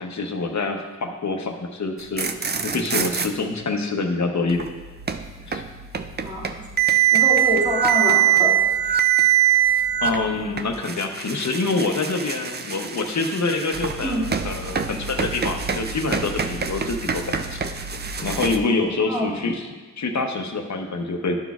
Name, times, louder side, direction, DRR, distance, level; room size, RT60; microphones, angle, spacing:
voice 1, 0.0-2.3 2.6-4.7 5.5-5.6 10.0-17.6 18.2-19.7 20.0-21.4, left 3 dB, 60° left, 4 dB, 0.8 m, -26 dB
sound 1, 2.0-3.3 4.5-18.6, right 10 dB, 35° right, 0.4 m, -23 dB
voice 2, 7.1-8.6 14.0-14.2 19.1-19.3, equal, 15° right, -6 dB, 2.1 m, -25 dB
11.5 x 6.1 x 2.4 m, 1.3 s
wide cardioid pair, 125°, 32 cm